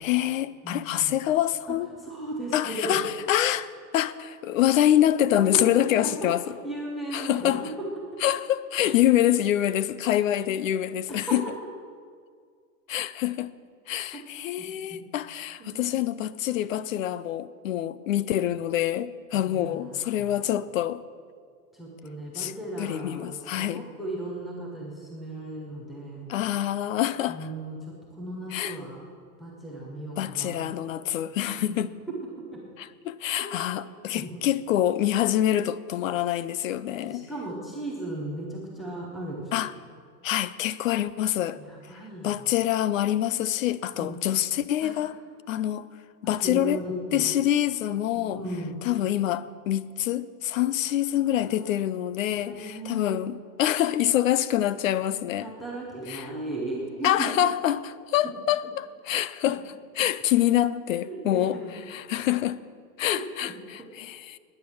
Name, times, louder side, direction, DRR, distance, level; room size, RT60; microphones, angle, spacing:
voice 1, 0.0-1.9 2.5-6.4 7.1-7.7 8.2-11.4 12.9-13.5 13.9-21.0 22.3-22.5 22.8-23.8 26.3-27.4 28.5-28.8 30.2-31.9 32.8-37.3 39.5-39.7 40.2-41.6 42.2-45.2 45.5-45.9 46.2-46.8 47.1-48.4 48.8-55.5 56.1-56.3 57.0-59.6 60.0-61.6 61.9-62.6 63.0-64.4, left 12 dB, 55° left, 0.6 m, -26 dB
voice 2, 0.6-1.1 2.0-3.0 6.0-6.1 6.6-7.6 11.1-11.4 14.1-14.2 14.6-14.7 14.9-15.0 15.6-15.8 19.3-20.4 21.7-26.3 27.3-27.8 28.1-29.0 29.4-31.1 31.5-31.8 32.5-32.6 34.1-34.3 37.0-39.5 41.6-42.5 43.9-44.2 44.8-44.9 46.2-47.3 48.2-48.8 51.4-51.7 52.3-53.2 55.4-57.4 58.6-58.7 61.0-61.7 63.1-63.5, right 1 dB, ahead, 0.4 m, -36 dB
19.0 x 9.9 x 6.3 m
supercardioid pair, 170°, 48 cm